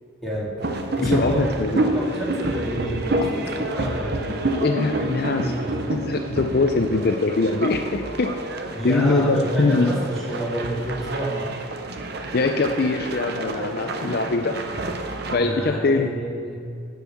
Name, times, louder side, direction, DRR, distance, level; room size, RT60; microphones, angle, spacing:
voice 1, 0.2-0.5 1.0-1.4 1.8-4.4 5.0-5.7 8.7-11.5 15.3-16.5, right 1 dB, ahead, -7 dB, 2.3 m, -29 dB
sound 1, 0.6-15.4, right 2 dB, 50° right, 0.7 m, -28 dB
voice 2, 1.0-1.8 3.2-3.3 4.6-5.5 5.9-8.3 8.8-9.9 12.3-14.6 15.3-16.1, left 3 dB, 50° left, 5 dB, 0.5 m, -22 dB
10.5 x 5.4 x 7.0 m, 2.4 s
head